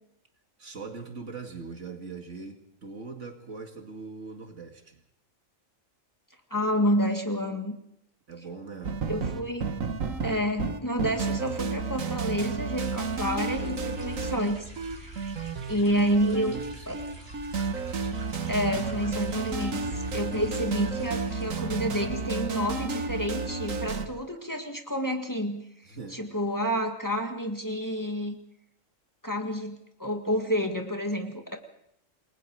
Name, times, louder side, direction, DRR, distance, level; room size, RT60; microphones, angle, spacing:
voice 1, 0.6-5.0 8.3-9.0 15.9-16.9 25.8-26.2, right 4 dB, 65° right, 5 dB, 2.4 m, -41 dB
voice 2, 6.5-7.8 9.1-9.7 10.2-16.6 16.9-17.0 18.5-25.6 26.1-28.3 29.2-31.6, equal, 15° left, 4 dB, 1.9 m, -29 dB
sound 1, 8.8-24.1, right 4 dB, 85° right, 1.7 m, -32 dB
sound 2, 12.8-21.5, right 2 dB, 50° right, 3.1 m, -45 dB
28.5 x 20.5 x 4.7 m, 0.74 s
omnidirectional pair, 1.4 m